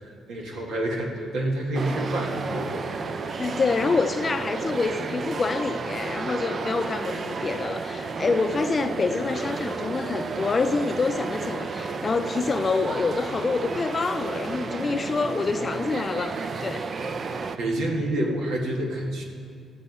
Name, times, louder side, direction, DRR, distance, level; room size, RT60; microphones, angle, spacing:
voice 1, 0.0-2.9 17.6-19.2, right 1 dB, 80° right, 1.8 m, -28 dB
sound 1, 1.7-17.6, right 4 dB, 45° right, 0.6 m, -32 dB
voice 2, 3.4-16.9, left 4 dB, 35° left, 0.6 m, -27 dB
14.5 x 7.2 x 5.5 m
cardioid pair, 90°, 0 cm